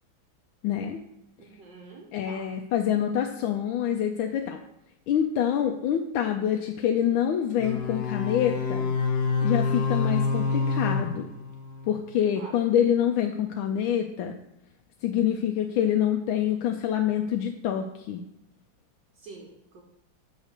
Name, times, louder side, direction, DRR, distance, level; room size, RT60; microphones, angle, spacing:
voice 1, 0.6-1.0 2.1-4.6 5.1-8.9 9.4-11.3 11.9-14.4 15.0-18.2, left 9 dB, 90° left, 3 dB, 1.4 m, -26 dB
voice 2, 1.4-2.5 12.4-12.6 19.2-19.8, right 3 dB, 65° right, -1 dB, 1.6 m, -46 dB
sound 1, 7.6-12.1, left 4 dB, 60° left, 1.3 m, -27 dB
6.6 x 4.0 x 6.4 m, 0.86 s
omnidirectional pair, 2.1 m